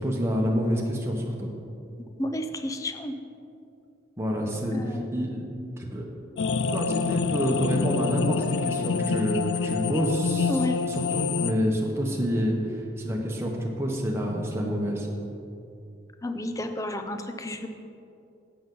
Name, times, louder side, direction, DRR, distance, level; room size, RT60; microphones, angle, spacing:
voice 1, 0.0-1.5 4.2-5.4 5.8-6.0 6.7-10.6 10.9-15.1, equal, 15° right, -2 dB, 1.1 m, -28 dB
voice 2, 2.2-3.1 4.7-5.2 10.5-10.8 16.2-17.7, left 1 dB, 20° left, 7 dB, 0.5 m, -31 dB
sound 1, 6.4-11.5, left 5 dB, 75° left, 0.4 m, -27 dB
11.0 x 7.9 x 3.9 m, 2.6 s
head